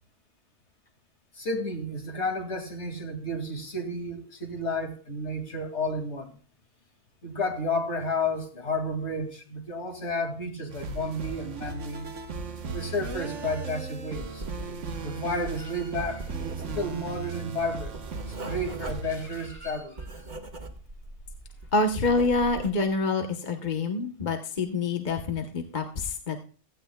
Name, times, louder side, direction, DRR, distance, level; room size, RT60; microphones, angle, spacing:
voice 1, 1.3-6.3 7.2-12.1 12.7-14.4 15.0-17.9 18.3-20.1, left 1 dB, 55° left, 3 dB, 2.6 m, -32 dB
sound 1, 10.7-19.5, right 4 dB, 65° right, 1.4 m, -37 dB
Writing, 14.4-15.1 15.3-21.1 21.5-22.9, right 2 dB, 35° right, 1.5 m, -40 dB
sound 2, 15.6-22.5, right 1 dB, 80° left, 3.6 m, -50 dB
voice 2, 21.7-26.4, left 3 dB, 40° left, 4 dB, 1.1 m, -26 dB
16.5 x 15.0 x 2.3 m, 0.40 s
omnidirectional pair, 1.4 m